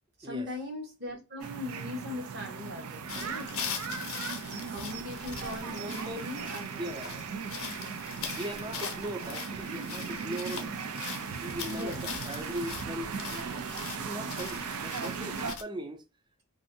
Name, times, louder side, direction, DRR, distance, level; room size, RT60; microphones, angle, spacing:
voice 1, 0.2-3.6 4.5-6.8 11.7-12.0, left 2 dB, 50° right, 0.9 m, -40 dB
sound 1, 1.4-15.5, right 5 dB, 90° right, 0.4 m, -38 dB
sound 2, 3.1-15.6, left 6 dB, 75° left, 0.7 m, -41 dB
voice 2, 5.6-6.2 6.8-7.2 8.3-10.7 11.1-13.6 13.9-16.0, right 1 dB, 20° right, 0.3 m, -39 dB
2.5 x 2.5 x 2.6 m
head